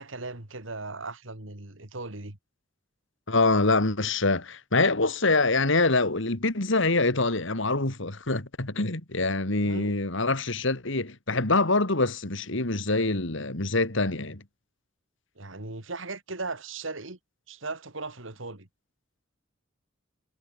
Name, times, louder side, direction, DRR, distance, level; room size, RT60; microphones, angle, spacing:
voice 1, 0.0-2.4 9.6-9.9 15.4-17.2 17.5-18.7, right 3 dB, 75° right, 3.0 m, -37 dB
voice 2, 3.3-14.4, left 3 dB, 70° left, 2.7 m, -25 dB
head